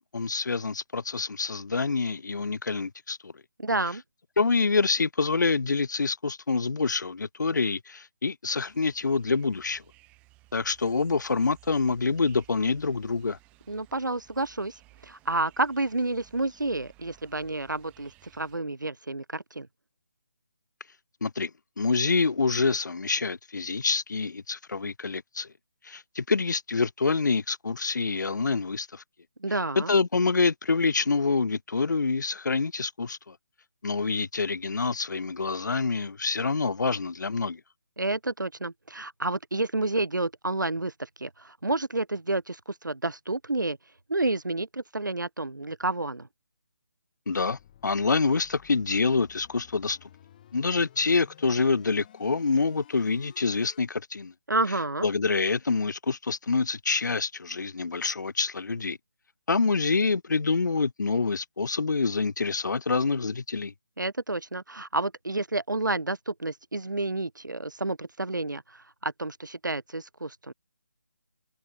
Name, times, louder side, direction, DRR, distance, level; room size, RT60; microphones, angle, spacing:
voice 1, 0.1-3.3 4.4-9.8 10.5-13.4 21.2-21.5 21.8-25.5 25.8-29.0 29.8-33.4 33.8-37.6 47.3-50.1 50.5-54.3 55.0-59.0 59.5-63.7, left 4 dB, 75° left, 0.4 m, -26 dB
voice 2, 3.6-4.0 13.7-19.7 29.4-29.9 38.0-43.8 44.1-46.3 54.5-55.1 64.0-70.5, right 2 dB, 85° right, 0.7 m, -30 dB
sound 1, 8.6-18.6, right 21 dB, 15° right, 2.5 m, -58 dB
sound 2, 47.4-53.8, left 11 dB, 25° left, 2.2 m, -55 dB
figure-of-eight pair, 150°, 10 cm